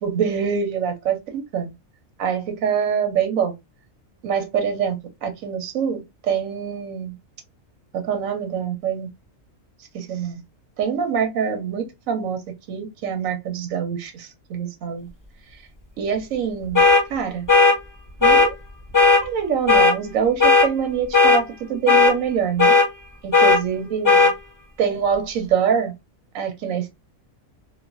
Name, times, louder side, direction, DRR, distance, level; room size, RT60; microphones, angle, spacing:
voice 1, 0.0-1.7 2.2-3.5 4.2-7.1 7.9-9.1 9.9-10.4 10.8-12.4 12.7-15.1 16.0-16.8 17.1-17.5 18.2-18.5 19.2-22.7 23.2-24.3 24.8-25.9 26.3-27.0, right 7 dB, 80° right, 1.1 m, -25 dB
sound 1, 16.8-17.0 17.5-17.8 18.2-18.5 18.9-19.2 19.7-19.9 20.4-20.7 21.1-21.4 21.9-22.1 22.6-22.9 23.3-23.6 24.0-24.3, left 3 dB, 25° left, 0.4 m, -14 dB
3.1 x 2.1 x 2.4 m
omnidirectional pair, 1.4 m